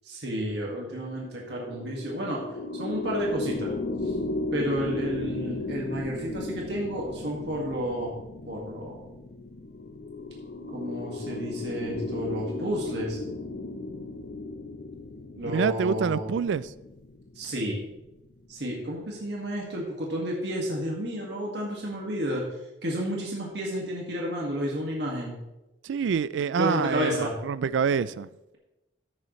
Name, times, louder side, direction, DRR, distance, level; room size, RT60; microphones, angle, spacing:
voice 1, 0.1-2.4 2.8-3.7 4.5-8.1 8.5-9.0 10.7-13.2 15.4-16.3 17.4-17.8 18.5-22.4 22.8-25.4 26.6-27.3, equal, 65° right, 1.9 m, -31 dB
sound 1, 1.1-18.6, left 2 dB, 55° left, 0.7 m, -36 dB
voice 2, 15.4-16.7 25.8-28.3, right 6 dB, 85° right, 0.3 m, -26 dB
14.5 x 6.7 x 3.1 m
head